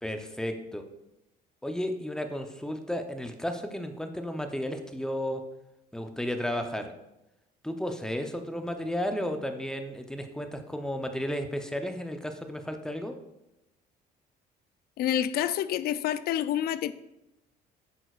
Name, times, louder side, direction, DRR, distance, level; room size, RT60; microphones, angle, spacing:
voice 1, 0.0-0.8 1.6-5.4 5.9-6.9 7.6-13.2, equal, 5° left, 0.7 m, -33 dB
voice 2, 15.0-16.9, left 11 dB, 65° left, 0.4 m, -28 dB
9.1 x 6.1 x 2.4 m
cardioid pair, 110°, 17 cm